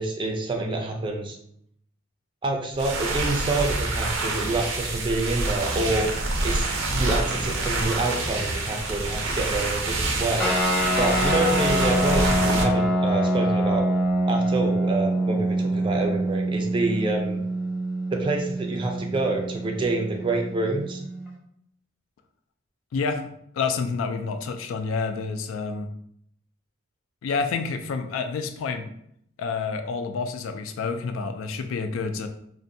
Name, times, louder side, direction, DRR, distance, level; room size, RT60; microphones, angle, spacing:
voice 1, 0.0-1.4 2.4-6.1 6.4-6.7 6.9-10.5 11.0-13.9 14.3-17.4 18.1-21.0, right 2 dB, 25° right, 2 dB, 0.4 m, -27 dB
sound 1, 2.7-12.6, right 2 dB, 90° right, 0.5 m, -27 dB
sound 2, 10.4-21.3, right 1 dB, 5° left, 0.7 m, -25 dB
voice 2, 22.9-23.3 23.5-25.9 27.2-28.9 29.4-32.3, left 4 dB, 85° left, 7 dB, 0.3 m, -28 dB
2.5 x 2.2 x 2.6 m, 0.71 s
head